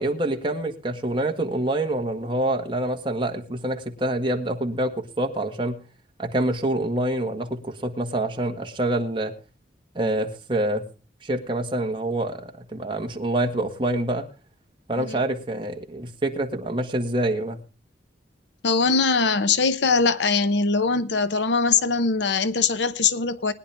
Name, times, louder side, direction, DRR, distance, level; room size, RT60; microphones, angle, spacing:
voice 1, 0.0-5.8 6.2-9.3 9.9-10.8 11.2-14.3 14.9-17.6, right 1 dB, 25° right, 1.7 m, -26 dB
voice 2, 18.6-23.5, left 4 dB, 70° left, 0.8 m, -22 dB
21.0 x 10.5 x 3.5 m
head